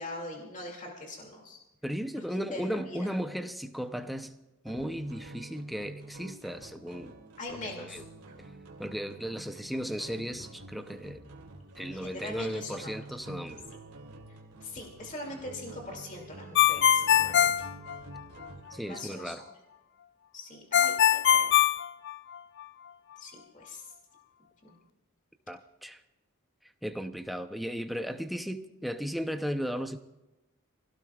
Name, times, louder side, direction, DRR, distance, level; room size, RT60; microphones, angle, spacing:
voice 1, 0.0-1.6 2.1-2.2 2.5-3.1 7.4-8.0 11.9-13.0 14.6-17.7 18.8-19.4 20.3-21.6 23.2-23.9 24.6-24.8, left 2 dB, 35° left, 0 dB, 2.5 m, -42 dB
voice 2, 1.8-4.4 4.6-7.1 7.5-8.0 8.8-11.2 11.8-13.6 18.7-19.4 25.5-26.0 26.8-30.0, equal, ahead, 7 dB, 0.7 m, -35 dB
sound 1, 4.7-18.8, right 2 dB, 80° right, 2.5 m, -48 dB
Ringtone, 16.5-18.5 20.7-22.6, left 10 dB, 50° left, 0.4 m, -23 dB
26.5 x 17.0 x 2.4 m, 0.99 s
head